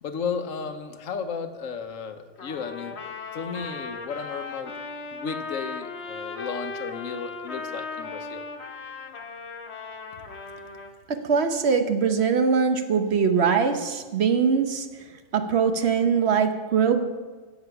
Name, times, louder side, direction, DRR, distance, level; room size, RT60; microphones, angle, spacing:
voice 1, 0.0-3.0 3.3-4.7 5.1-8.4, left 6 dB, 90° left, 9 dB, 1.2 m, -34 dB
Trumpet, 2.4-10.9, left 4 dB, 60° left, 1.2 m, -37 dB
voice 2, 11.1-14.9 15.3-17.0, right 6 dB, 60° right, 8 dB, 1.1 m, -22 dB
15.5 x 7.0 x 5.8 m, 1.4 s
omnidirectional pair, 1.3 m